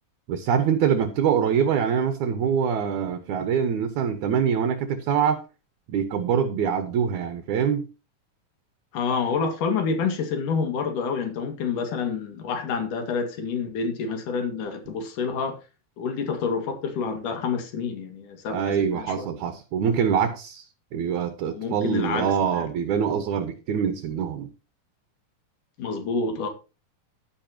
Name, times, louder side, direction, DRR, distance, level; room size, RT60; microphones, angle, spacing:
voice 1, 0.3-5.4 5.9-7.9 18.5-20.6 20.9-24.5, right 7 dB, 65° right, 2.5 m, -24 dB
voice 2, 8.9-15.6 16.0-19.3 21.4-22.3 22.5-22.7 25.8-26.5, left 5 dB, 70° left, 3.6 m, -28 dB
11.5 x 11.0 x 2.9 m
omnidirectional pair, 3.9 m